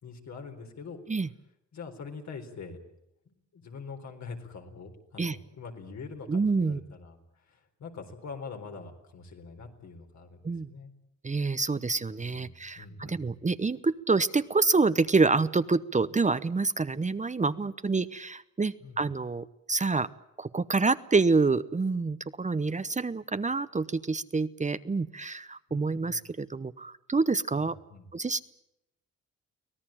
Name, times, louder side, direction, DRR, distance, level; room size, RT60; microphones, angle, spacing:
voice 1, 0.0-1.0 1.7-2.8 3.3-10.9 12.1-13.3 18.8-19.1 25.7-26.2 27.6-28.1, left 4 dB, 70° left, 4 dB, 4.2 m, -44 dB
voice 2, 6.3-6.8 10.4-10.7 11.2-20.1 20.4-27.8 28.1-28.4, right 4 dB, 25° right, 13 dB, 0.9 m, -27 dB
24.5 x 18.0 x 8.9 m, 0.82 s
cardioid pair, 75°, 29 cm